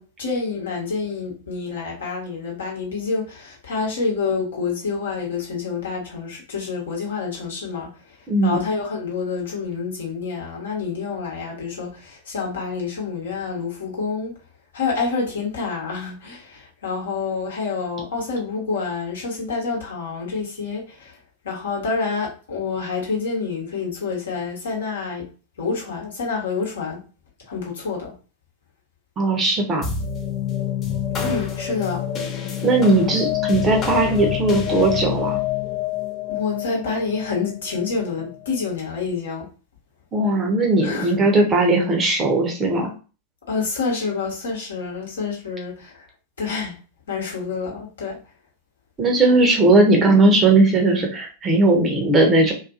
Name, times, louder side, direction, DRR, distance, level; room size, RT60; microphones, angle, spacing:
voice 1, 0.0-8.2 8.4-14.3 14.7-21.2 21.4-25.3 25.6-27.0 27.5-28.1 31.2-32.1 36.3-39.5 40.8-41.1 43.5-46.1 46.4-46.7 47.1-48.2, left 4 dB, 65° left, 1.0 m, -28 dB
voice 2, 8.3-8.6 29.2-29.9 32.6-35.4 40.1-42.9 49.0-52.5, right 2 dB, 25° right, 0.7 m, -18 dB
sound 1, 29.8-38.5, left 10 dB, 30° left, 0.5 m, -27 dB
2.6 x 2.4 x 2.3 m
figure-of-eight pair, 90°, 0 cm